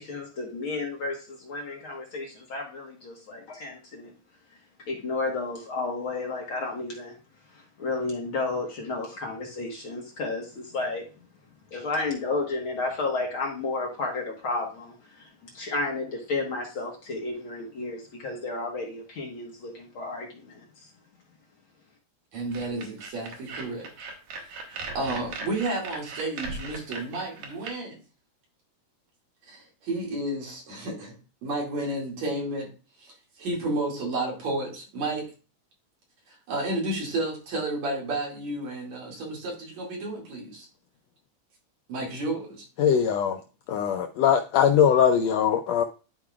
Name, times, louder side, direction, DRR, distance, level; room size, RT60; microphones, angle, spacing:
voice 1, 0.0-4.1 4.9-7.1 7.5-11.0 11.7-20.9, left 3 dB, 50° left, 1.8 m, -32 dB
voice 2, 22.3-23.9 24.6-28.0 29.5-31.2 31.4-32.7 33.0-35.3 36.3-40.7 41.9-42.7, right 2 dB, 65° right, 3.5 m, -31 dB
sound 1, 22.5-27.7, right 3 dB, 90° right, 3.0 m, -38 dB
voice 3, 42.8-43.4 43.7-45.8, left 8 dB, 80° left, 1.5 m, -21 dB
12.0 x 4.8 x 2.4 m
omnidirectional pair, 3.5 m